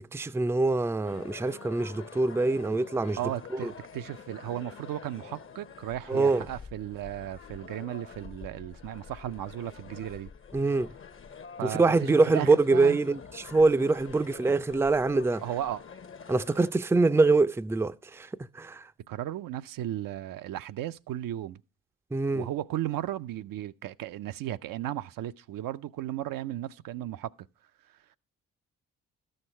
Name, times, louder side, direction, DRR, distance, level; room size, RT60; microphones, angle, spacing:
voice 1, 0.0-3.2 3.5-3.7 6.1-6.5 10.5-10.9 11.7-15.4 16.3-18.9 22.1-22.5, right 3 dB, 5° right, 0.5 m, -24 dB
sound 1, 1.0-16.7, left 6 dB, 35° left, 0.8 m, -47 dB
voice 2, 3.2-10.3 11.6-13.0 15.4-15.8 19.1-21.6 22.3-27.3 27.8-28.2, right 12 dB, 65° right, 0.5 m, -35 dB
12.5 x 6.6 x 4.3 m
hypercardioid pair, 45°, 37 cm